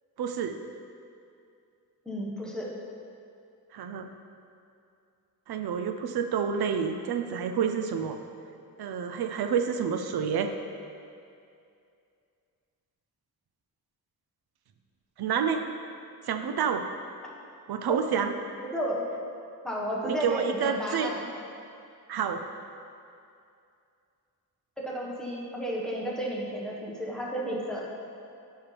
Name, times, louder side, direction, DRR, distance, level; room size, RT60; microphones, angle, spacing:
voice 1, 0.2-0.6 3.7-4.1 5.5-8.2 8.8-10.5 15.2-15.6 16.2-16.8 17.7-18.3 20.1-21.1 22.1-22.4, right 7 dB, 80° right, 6 dB, 0.6 m, -28 dB
voice 2, 2.0-2.7 17.9-18.0 18.7-19.0 19.6-21.3 24.8-27.9, equal, ahead, -5 dB, 1.3 m, -32 dB
11.5 x 5.6 x 3.4 m, 2.5 s
wide cardioid pair, 120°, 37 cm